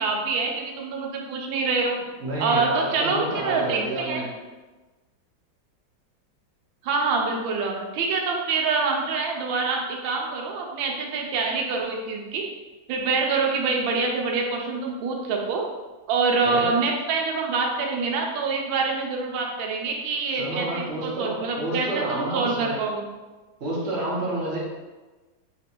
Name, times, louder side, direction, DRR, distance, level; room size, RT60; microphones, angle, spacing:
voice 1, 0.0-2.0 2.4-4.2 6.8-12.4 12.9-15.6 16.1-23.0, right 4 dB, 80° right, 1 dB, 1.3 m, -26 dB
voice 2, 2.2-4.3 16.4-16.7 20.3-22.8 23.6-24.6, right 1 dB, 45° right, -6 dB, 0.9 m, -29 dB
3.3 x 2.9 x 2.8 m, 1.2 s
omnidirectional pair, 2.1 m